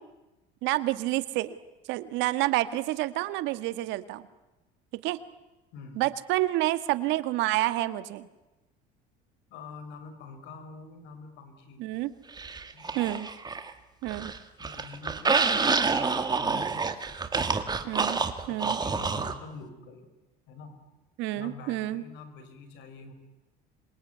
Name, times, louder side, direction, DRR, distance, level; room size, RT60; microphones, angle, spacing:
voice 1, 0.6-1.6 1.9-4.3 4.9-5.2 5.9-8.3 11.8-12.1 12.9-13.3 14.0-14.3 17.8-18.2 18.5-18.8 21.2-22.0, right 16 dB, 75° right, 13 dB, 1.6 m, -28 dB
voice 2, 5.7-6.0 9.5-11.8 12.7-13.0 14.6-17.5 18.4-20.1 20.5-20.8 21.3-23.1, left 4 dB, 70° left, 9 dB, 5.7 m, -46 dB
sound 1, 12.4-13.7 14.0-19.4, right 4 dB, 20° right, 2.2 m, -28 dB
26.5 x 22.5 x 9.5 m, 1.1 s
supercardioid pair, 95°, 19 cm